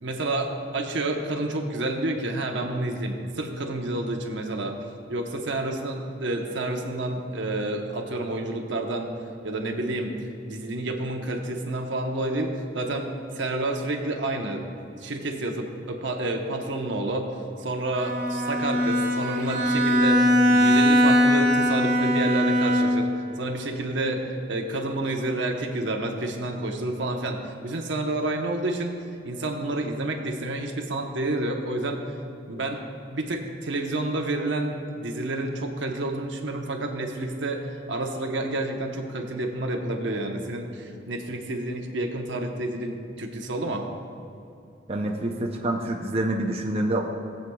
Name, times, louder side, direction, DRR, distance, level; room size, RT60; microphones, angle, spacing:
voice 1, 0.0-4.7 5.1-9.1 9.4-10.1 10.4-13.1 13.3-14.6 15.0-23.1 23.4-28.9 29.2-32.0 32.5-32.8 33.1-37.6 37.9-43.9, right 2 dB, 75° right, 2 dB, 1.0 m, -29 dB
Bowed string instrument, 17.9-23.2, equal, 60° right, 2.2 m, -21 dB
voice 2, 44.9-47.0, right 1 dB, 35° right, 0 dB, 0.6 m, -26 dB
18.0 x 7.8 x 2.3 m, 2.6 s
head